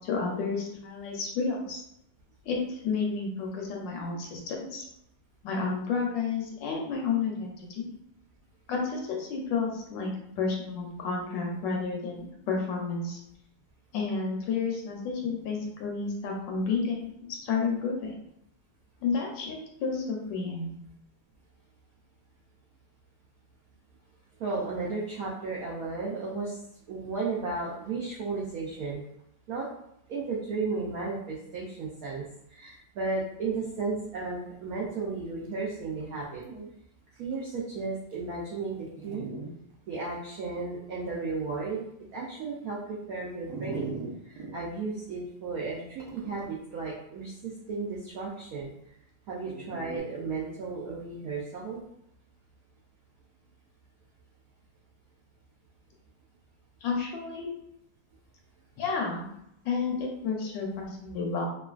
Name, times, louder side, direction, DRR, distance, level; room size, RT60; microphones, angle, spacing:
voice 1, 0.0-1.8 2.5-4.9 5.4-7.8 8.7-10.1 10.4-13.2 13.9-18.1 19.0-20.7 56.8-57.5 58.8-59.3 59.6-61.5, left 4 dB, 75° left, 0 dB, 1.2 m, -31 dB
voice 2, 24.4-26.6 26.9-29.0 29.5-29.6 30.1-32.2 32.5-36.4 37.2-39.2 39.9-41.8 42.1-43.9 44.2-48.7 49.3-51.8, right 4 dB, 90° right, -4 dB, 0.7 m, -34 dB
Dog, 36.0-36.1 36.4-36.7 37.3-37.4 38.1-38.2 39.0-39.5 40.1-40.2 43.5-44.5 46.0-46.5 49.4-50.0, right 3 dB, 70° right, 1.2 m, -39 dB
3.1 x 2.3 x 2.3 m, 0.77 s
omnidirectional pair, 2.1 m